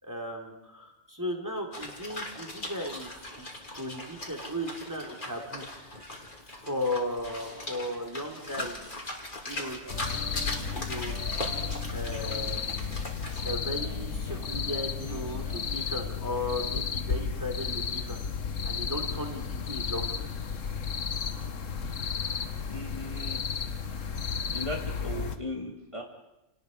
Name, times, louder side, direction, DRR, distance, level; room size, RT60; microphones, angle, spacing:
voice 1, 0.0-3.5 3.7-5.7 6.6-8.8 9.4-9.8 10.1-11.2 11.9-12.6 13.4-18.2 18.6-20.3, left 1 dB, 15° right, 2 dB, 3.0 m, -36 dB
sound 1, 1.7-13.5, left 1 dB, 40° left, 3.1 m, -40 dB
sound 2, 9.8-15.7, right 2 dB, 45° right, 5.8 m, -48 dB
sound 3, 9.9-25.4, left 6 dB, 80° left, 1.6 m, -33 dB
voice 2, 22.7-23.4 24.5-26.0, left 1 dB, 25° left, 1 dB, 1.9 m, -37 dB
29.5 x 18.5 x 5.3 m, 0.93 s
omnidirectional pair, 1.3 m